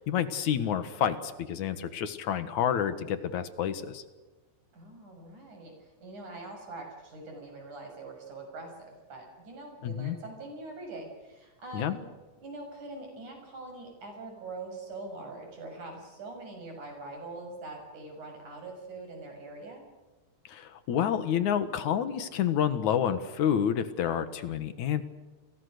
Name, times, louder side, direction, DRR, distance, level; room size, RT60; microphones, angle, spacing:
voice 1, 0.0-4.0 9.8-10.2 11.7-12.0 20.4-25.0, left 9 dB, 75° left, 12 dB, 2.9 m, -29 dB
voice 2, 4.7-12.0 12.4-19.9, right 2 dB, 90° right, 3 dB, 8.3 m, -43 dB
30.0 x 23.0 x 6.7 m, 1.2 s
omnidirectional pair, 3.4 m